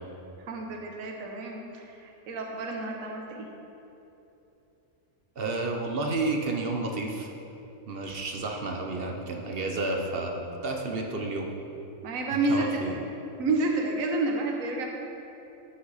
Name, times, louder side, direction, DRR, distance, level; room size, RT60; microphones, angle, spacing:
voice 1, 0.5-3.5 12.0-13.0 13.4-14.9, right 2 dB, 70° right, 1 dB, 1.3 m, -29 dB
voice 2, 5.4-7.3 7.9-11.5 12.5-13.0, right 3 dB, 50° right, 2 dB, 0.9 m, -31 dB
13.5 x 5.6 x 4.1 m, 3.0 s
omnidirectional pair, 1.5 m